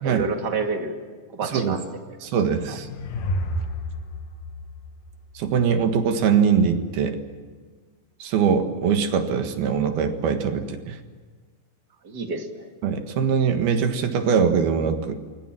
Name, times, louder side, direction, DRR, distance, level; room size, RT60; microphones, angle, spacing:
voice 1, 0.0-1.0 1.3-1.8 2.7-2.8 12.0-12.7, right 4 dB, 30° right, 3 dB, 2.1 m, -28 dB
voice 2, 1.4-1.8 2.2-2.9 5.3-7.2 8.2-10.9 12.8-15.2, right 6 dB, 70° right, 6 dB, 3.3 m, -22 dB
sound 1, 2.3-5.8, left 1 dB, 60° left, 2.8 m, -31 dB
28.5 x 22.0 x 7.5 m, 1.5 s
omnidirectional pair, 4.9 m